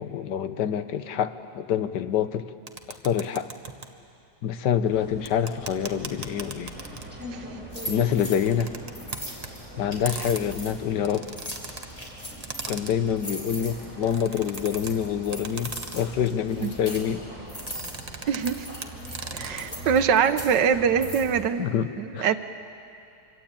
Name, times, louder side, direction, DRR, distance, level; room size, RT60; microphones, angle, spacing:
voice 1, 0.0-2.5 2.9-3.5 4.4-6.7 7.9-8.7 9.8-11.3 12.7-17.2 21.6-22.4, left 8 dB, 70° left, 11 dB, 1.5 m, -26 dB
sound 1, 2.7-3.9 5.3-7.3 8.3-9.5 10.0-11.9 12.4-13.2 13.9-14.9 15.3-16.1 17.5-18.5 18.8-19.6, right 3 dB, 25° right, 1.1 m, -38 dB
sound 2, 4.8-21.4, right 1 dB, 5° right, 7.7 m, -42 dB
sound 3, 7.7-8.4 8.9-10.7 11.3-12.7 13.2-17.0 17.5-18.0 18.3-20.5 21.0-21.2, equal, 20° left, 3.7 m, -39 dB
voice 2, 18.3-18.7 19.3-21.7 22.0-22.4, right 7 dB, 75° right, 11 dB, 1.6 m, -23 dB
25.5 x 24.5 x 8.9 m, 2.6 s
omnidirectional pair, 1.9 m